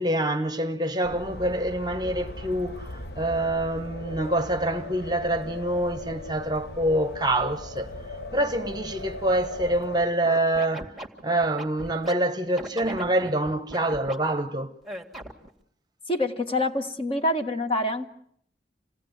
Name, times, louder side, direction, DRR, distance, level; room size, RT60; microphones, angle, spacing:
voice 1, 0.0-7.9 8.3-10.9 11.2-14.8, right 1 dB, 25° right, 1.0 m, -26 dB
sound 1, 1.0-10.1, left 2 dB, 60° left, 1.2 m, -38 dB
Scratching (performance technique), 10.2-12.1 12.6-14.2 14.8-15.5, right 1 dB, ahead, 2.2 m, -38 dB
voice 2, 16.1-18.1, left 1 dB, 30° left, 1.6 m, -26 dB
27.5 x 18.0 x 9.4 m
head